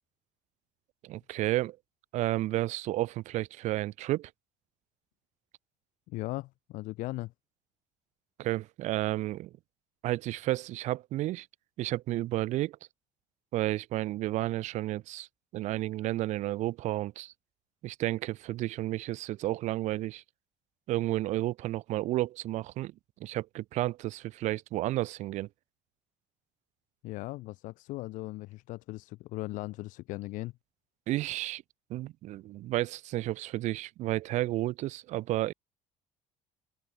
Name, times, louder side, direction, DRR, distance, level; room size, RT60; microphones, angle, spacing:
voice 1, 1.0-1.8 2.1-4.3 8.4-9.5 10.0-11.5 11.8-12.8 13.5-15.3 15.5-17.3 17.8-20.2 20.9-22.9 23.2-25.5 31.1-31.6 31.9-35.5, right 16 dB, 65° right, 2.4 m, -31 dB
voice 2, 6.1-7.3 27.0-30.5, left 19 dB, 80° left, 1.6 m, -38 dB
cardioid pair, 175°, 13 cm